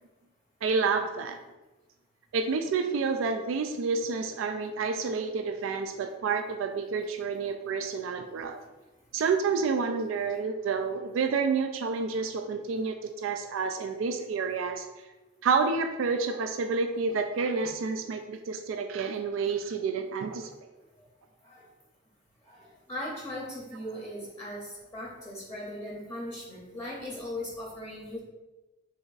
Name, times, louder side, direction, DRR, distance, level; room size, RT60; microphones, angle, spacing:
voice 1, 0.6-1.4 2.3-8.6 9.1-14.9 15.4-20.5, right 5 dB, 80° right, 6 dB, 0.3 m, -29 dB
voice 2, 22.5-28.2, left 1 dB, 15° left, -4 dB, 0.7 m, -39 dB
3.4 x 3.0 x 3.9 m, 1.1 s
head